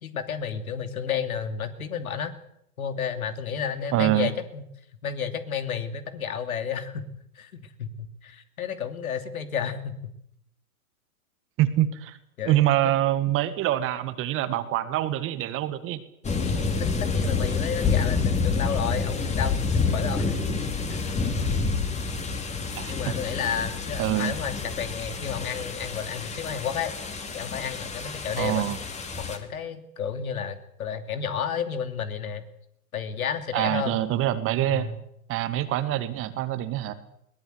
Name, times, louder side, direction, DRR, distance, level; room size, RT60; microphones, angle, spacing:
voice 1, 0.0-2.3 2.8-4.6 5.0-7.1 7.3-10.0 12.4-12.9 16.8-20.4 20.9-21.1 22.9-26.9 27.3-28.6 29.3-32.5 32.9-34.0 34.7-35.0, left 7 dB, 70° left, 9 dB, 3.0 m, -32 dB
voice 2, 3.9-4.3 11.6-12.2 12.5-16.0 22.8-23.1 24.0-24.3 28.4-28.8 33.5-34.9 35.3-36.9, right 13 dB, 30° right, 12 dB, 1.8 m, -25 dB
sound 1, 16.2-29.4, left 4 dB, 15° left, 2.8 m, -28 dB
21.5 x 19.0 x 8.0 m, 0.73 s
hypercardioid pair, 115°, 44 cm